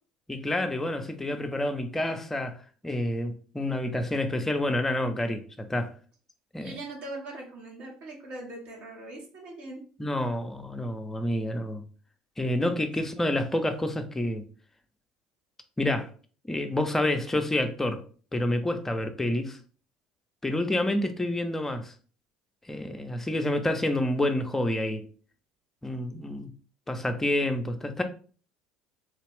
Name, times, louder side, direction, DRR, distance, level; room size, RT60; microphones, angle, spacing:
voice 1, 0.3-2.6 2.8-5.9 6.5-6.8 10.0-11.8 12.4-14.4 15.8-16.1 16.5-18.0 18.3-19.6 20.4-21.9 22.7-25.0 25.8-26.5 26.9-28.0, left 1 dB, 15° left, 0.6 m, -28 dB
voice 2, 6.6-9.8, right 2 dB, 60° right, 1.3 m, -41 dB
3.4 x 2.3 x 3.4 m
hypercardioid pair, 65°, 3 cm